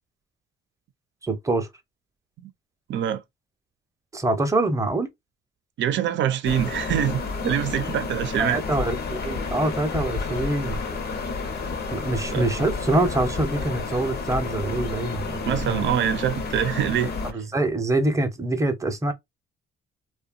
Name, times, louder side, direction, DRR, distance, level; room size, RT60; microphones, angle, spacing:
voice 1, 1.2-1.7 4.1-5.1 8.4-10.8 11.9-15.8 17.2-19.1, right 2 dB, 15° right, 0.7 m, -25 dB
voice 2, 2.9-3.2 5.8-8.6 12.3-12.4 15.4-17.1, right 10 dB, 70° right, 0.6 m, -24 dB
sound 1, 6.4-17.3, left 4 dB, 50° left, 0.8 m, -30 dB
2.7 x 2.2 x 2.4 m
cardioid pair, 90°, 20 cm